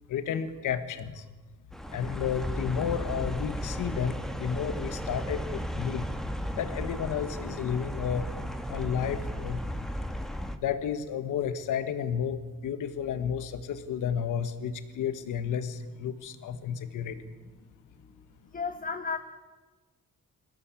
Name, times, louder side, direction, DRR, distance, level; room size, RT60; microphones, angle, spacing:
voice 1, 0.1-1.2 1.9-6.0 6.5-8.3 8.7-9.6 10.6-17.2, left 8 dB, 85° left, 11 dB, 1.6 m, -32 dB
sound 1, 1.7-10.6, equal, ahead, 1.9 m, -35 dB
voice 2, 18.5-19.2, left 5 dB, 25° left, 7 dB, 1.5 m, -33 dB
22.5 x 16.5 x 8.5 m, 1.2 s
cardioid pair, 75°, 30 cm